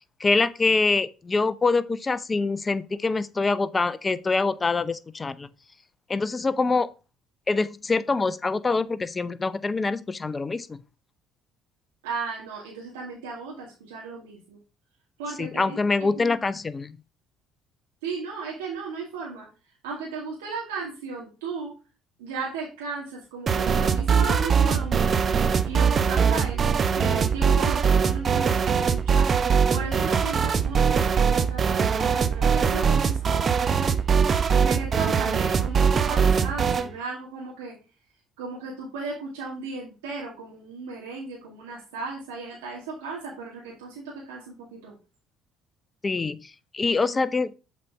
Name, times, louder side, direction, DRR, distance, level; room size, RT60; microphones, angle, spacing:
voice 1, 0.2-5.5 6.1-6.9 7.5-10.8 15.4-17.0 46.0-47.5, left 3 dB, 30° left, 0.6 m, -25 dB
voice 2, 12.0-14.6 15.2-15.8 16.2-16.3 18.0-19.5 19.8-21.7 22.2-25.3 25.6-26.6 26.9-29.3 29.7-34.0 34.5-37.7 38.4-44.9, right 4 dB, 90° right, 2.0 m, -35 dB
sound 1, 23.5-36.9, right 6 dB, 40° right, 0.8 m, -22 dB
7.3 x 4.2 x 4.6 m
hypercardioid pair, 65°, 0 cm